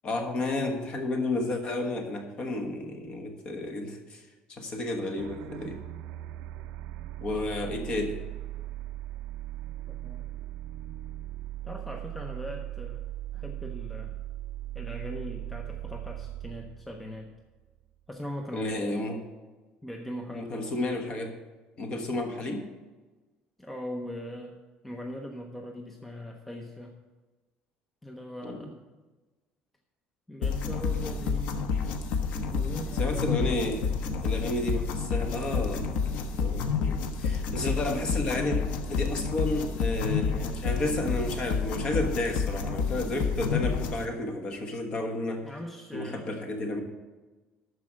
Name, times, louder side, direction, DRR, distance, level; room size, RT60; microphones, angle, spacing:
voice 1, 0.0-4.2 4.5-5.8 7.2-8.1 18.5-19.2 20.3-21.3 21.8-22.7 28.4-28.7 32.9-33.8 34.2-38.6 38.9-45.4 45.9-46.8, left 2 dB, 30° left, 4 dB, 1.3 m, -32 dB
sound 1, 5.2-17.9, right 14 dB, 55° right, 0.5 m, -39 dB
voice 2, 9.9-10.3 11.6-13.0 13.3-14.2 14.7-17.3 18.1-19.0 19.8-20.7 23.6-24.5 24.8-26.9 28.0-28.7 30.3-31.8 32.5-33.4 34.0-34.3 45.4-46.3, equal, 5° left, 2 dB, 0.6 m, -40 dB
sound 2, 30.4-44.0, left 5 dB, 65° left, 1.0 m, -29 dB
12.5 x 4.7 x 7.4 m, 1.2 s
cardioid pair, 180°, 3 cm